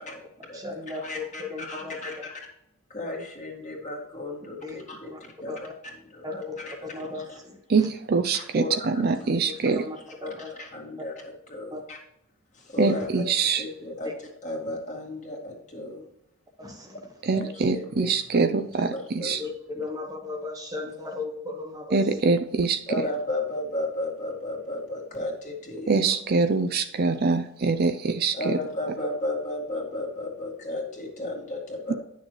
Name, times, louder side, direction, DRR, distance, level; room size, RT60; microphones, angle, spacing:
voice 1, 0.0-0.7 1.0-2.4 2.9-5.1 5.4-5.5 6.1-6.7 7.2-7.3 8.3-9.0 10.2-12.0 12.5-14.1 14.4-16.1 16.9-17.0 17.3-18.5 18.9-19.3 22.9-26.1 26.4-26.5 27.0-27.2 28.3-31.9, left 2 dB, 35° left, 0 dB, 2.0 m, -34 dB
voice 2, 0.5-2.2 4.6-5.2 5.5-5.7 6.2-7.9 9.2-10.5 11.7-11.8 14.0-14.1 16.6-17.1 19.4-22.1, left 3 dB, 15° right, 3 dB, 0.9 m, -36 dB
voice 3, 7.7-9.8 12.8-13.6 17.2-19.4 21.9-22.8 25.9-28.5 31.9-32.0, right 4 dB, 45° right, 9 dB, 0.5 m, -24 dB
10.5 x 6.5 x 3.1 m, 0.79 s
head